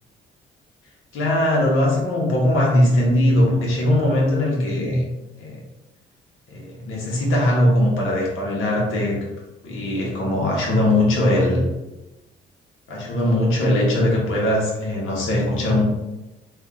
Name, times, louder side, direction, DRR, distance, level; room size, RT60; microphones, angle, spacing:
voice 1, 1.1-5.0 5.4-5.6 6.5-9.2 9.6-11.6 12.9-15.8, left 1 dB, 85° left, -3 dB, 1.3 m, -20 dB
3.5 x 2.6 x 3.5 m, 1.0 s
cardioid pair, 90°, 20 cm